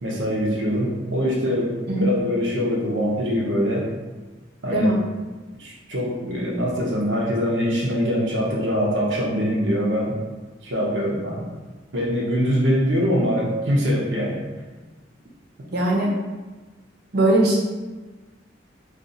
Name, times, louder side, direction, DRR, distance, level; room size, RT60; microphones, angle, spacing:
voice 1, 0.0-3.9 4.6-4.9 5.6-10.1 10.6-11.5 11.9-14.4 15.6-15.7, equal, 85° right, -3 dB, 0.8 m, -23 dB
voice 2, 15.7-16.1 17.1-17.6, right 1 dB, 60° right, -2 dB, 0.7 m, -19 dB
2.5 x 2.4 x 3.9 m, 1.3 s
head